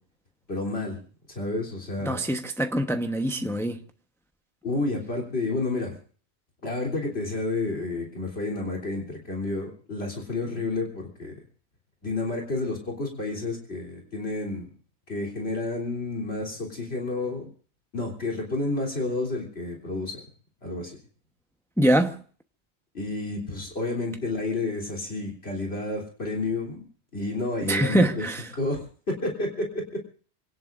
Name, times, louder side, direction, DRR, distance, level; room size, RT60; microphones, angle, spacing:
voice 1, 0.5-1.0 1.4-2.2 4.6-6.0 6.6-11.3 12.0-14.7 15.1-17.5 17.9-20.2 20.6-21.0 22.9-26.8 27.1-28.3 28.5-29.7, left 2 dB, 70° left, 3.7 m, -30 dB
voice 2, 2.1-3.8 21.8-22.2 27.7-28.4, right 1 dB, 5° left, 1.0 m, -24 dB
27.5 x 18.0 x 2.6 m
omnidirectional pair, 1.1 m